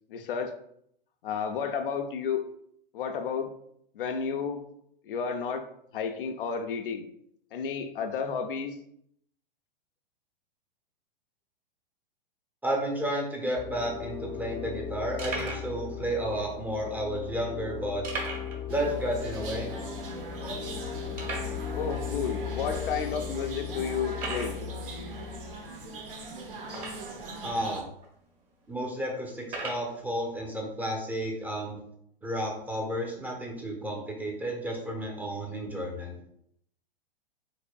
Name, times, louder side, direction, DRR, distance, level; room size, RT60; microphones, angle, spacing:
voice 1, 0.1-0.5 1.2-2.4 2.9-3.5 3.9-4.6 5.1-5.6 5.9-7.1 7.5-8.8 21.7-24.6, left 6 dB, 65° left, 6 dB, 0.7 m, -32 dB
voice 2, 12.6-18.1 18.7-19.9 20.3-20.7 27.4-27.9 28.7-31.8 32.2-36.2, right 1 dB, 5° right, -1 dB, 1.1 m, -32 dB
sound 1, 13.6-25.5, left 9 dB, 15° left, 0.5 m, -37 dB
sound 2, 13.7-13.8 14.0-14.2 14.7-14.8 15.2-15.7 16.5-16.6 18.0-18.6 18.9-19.0 19.4-19.5 20.1-20.2 21.1-21.6 22.4-22.5 23.1-23.2 24.1-24.6 26.7-27.2 28.0-28.1 29.4-29.9, right 3 dB, 25° right, 1.7 m, -36 dB
sound 3, 18.7-27.8, right 2 dB, 65° right, 1.1 m, -40 dB
4.7 x 4.1 x 2.3 m, 0.70 s
hypercardioid pair, 110°, 29 cm